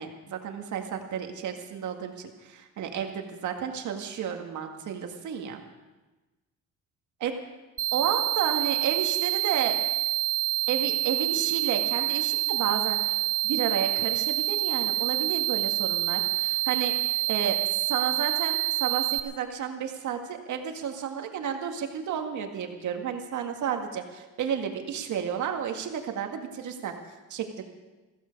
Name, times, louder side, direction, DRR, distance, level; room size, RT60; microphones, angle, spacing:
voice 1, 0.0-5.6 7.2-7.3 7.9-9.8 10.7-13.2 13.4-16.9 17.3-26.9 27.3-27.6, right 8 dB, 75° right, 4 dB, 2.0 m, -32 dB
sound 1, 7.8-19.2, right 17 dB, 45° right, 1.1 m, -27 dB
15.5 x 15.0 x 5.3 m, 1.2 s
cardioid pair, 90°, 30 cm